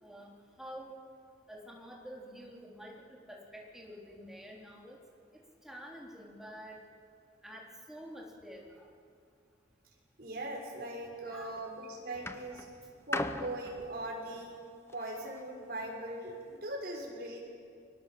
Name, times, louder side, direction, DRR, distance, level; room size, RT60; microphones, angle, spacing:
voice 1, 0.0-1.0 1.5-5.0 5.3-6.8 7.4-8.9 11.3-11.5 12.4-12.8, equal, 5° right, -2 dB, 3.7 m, -49 dB
voice 2, 10.2-12.6 13.1-14.5 14.9-17.4, right 1 dB, 55° right, -1 dB, 6.5 m, -40 dB
sound 1, 11.2-11.6 12.2-15.5 16.3-16.4, left 2 dB, 15° left, 0.9 m, -40 dB
30.0 x 23.5 x 7.8 m, 2.4 s
head